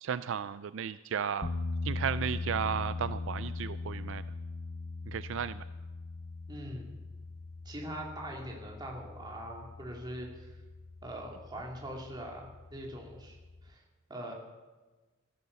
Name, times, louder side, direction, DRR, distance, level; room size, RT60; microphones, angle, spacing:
voice 1, 0.0-1.5 1.8-4.2 5.1-5.6, right 7 dB, 65° right, 14 dB, 0.4 m, -34 dB
sound 1, 1.4-13.7, left 3 dB, 50° left, 0.9 m, -40 dB
voice 2, 6.5-6.9 7.6-10.5 11.0-13.4 13.6-13.8 14.1-14.3, right 1 dB, 20° right, -1 dB, 3.0 m, -42 dB
14.5 x 12.5 x 6.9 m, 1.2 s
head